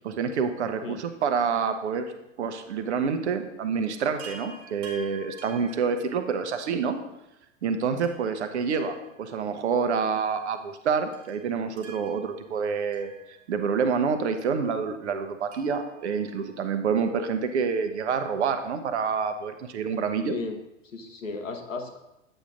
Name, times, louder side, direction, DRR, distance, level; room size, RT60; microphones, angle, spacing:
voice 1, 0.0-2.1 2.4-7.0 7.6-13.1 13.5-20.4, right 6 dB, 60° right, 8 dB, 0.8 m, -27 dB
Chime, 4.2-6.6 8.0-9.6 9.8-9.9 11.1-13.8 15.5-17.1 18.7-18.8 19.0-19.1, right 3 dB, 35° right, 1.1 m, -49 dB
voice 2, 20.2-20.5 20.9-22.0, left 4 dB, 80° left, 5 dB, 1.0 m, -35 dB
8.9 x 7.0 x 2.5 m, 0.88 s
figure-of-eight pair, 95°, 39 cm